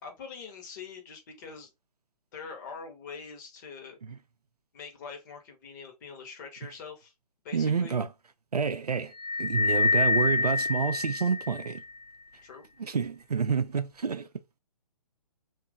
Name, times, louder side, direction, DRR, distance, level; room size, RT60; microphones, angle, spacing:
voice 1, 0.0-1.7 2.3-4.0 4.7-7.1 7.4-8.0 12.4-12.6, left 5 dB, 30° left, 0.9 m, -44 dB
voice 2, 7.5-8.1 8.5-9.1 9.4-11.8 12.8-14.3, right 6 dB, 80° right, 0.5 m, -28 dB
sound 1, 9.2-11.8, left 3 dB, 90° left, 0.4 m, -26 dB
2.9 x 2.5 x 3.6 m
figure-of-eight pair, 130°, 20 cm